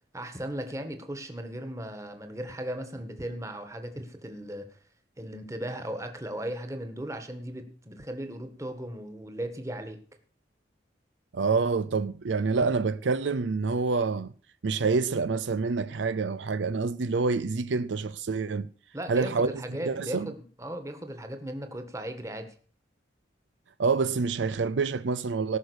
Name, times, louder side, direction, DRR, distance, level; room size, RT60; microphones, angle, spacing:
voice 1, 0.1-4.8 5.2-10.0 18.9-22.5, right 1 dB, 15° right, 1.7 m, -37 dB
voice 2, 11.3-14.3 14.6-18.7 19.1-19.5 19.8-20.3 23.8-25.6, right 4 dB, 75° right, 0.5 m, -27 dB
18.5 x 6.3 x 6.4 m
head